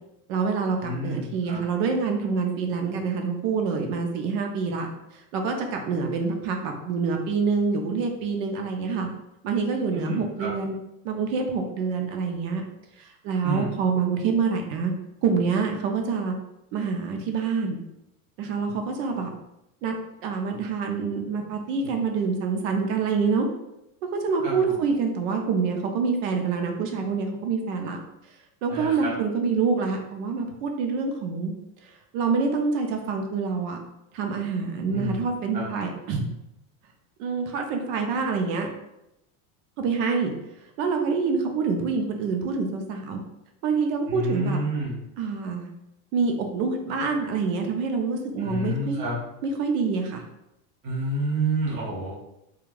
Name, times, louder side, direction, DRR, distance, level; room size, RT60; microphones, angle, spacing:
voice 1, 0.3-9.1 9.4-10.8 11.0-12.6 13.0-14.9 15.2-16.3 16.7-17.8 18.4-19.3 19.8-20.0 20.2-23.5 24.1-28.0 28.6-31.5 32.1-33.8 34.1-36.3 37.2-38.7 39.8-40.3 40.8-43.2 43.6-44.6 45.2-45.7 46.1-49.0 49.4-50.2, right 5 dB, 65° right, 3 dB, 0.6 m, -26 dB
voice 2, 0.8-1.6 9.9-10.5 13.4-13.7 24.4-24.8 28.7-29.1 34.9-35.3 35.5-35.7 44.1-45.0 48.4-49.2 50.8-52.2, right 1 dB, 20° right, -6 dB, 0.3 m, -29 dB
2.3 x 2.3 x 3.1 m, 0.86 s
cardioid pair, 170°, 43 cm